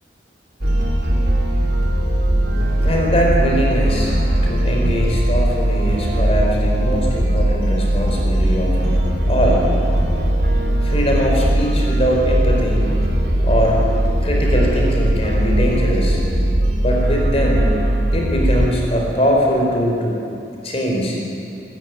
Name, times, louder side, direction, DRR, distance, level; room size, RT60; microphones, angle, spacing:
sound 1, 0.6-18.7, right 1 dB, 60° right, 3.1 m, -19 dB
voice 1, 2.8-4.2 4.5-8.8 9.3-9.6 10.8-13.0 13.4-13.8 14.2-16.2 16.8-17.7 18.1-20.2 20.6-21.2, equal, 35° left, -1 dB, 4.5 m, -21 dB
24.0 x 14.0 x 9.5 m, 2.7 s
head